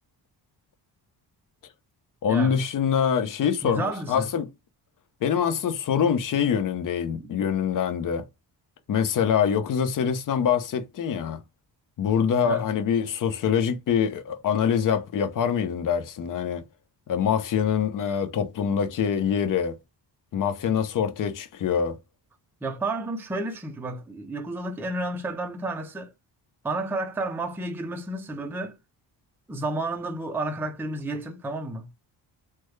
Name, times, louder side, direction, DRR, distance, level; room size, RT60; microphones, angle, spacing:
voice 1, 2.2-4.5 5.2-8.2 8.9-11.4 12.0-16.6 17.1-19.8 20.3-22.0, left 7 dB, 50° left, 0.6 m, -24 dB
voice 2, 3.6-4.3 7.2-7.4 12.4-12.7 22.6-26.1 26.6-28.8 29.5-31.9, right 2 dB, 5° right, 0.4 m, -31 dB
3.4 x 2.1 x 3.1 m
cardioid pair, 105°, 43 cm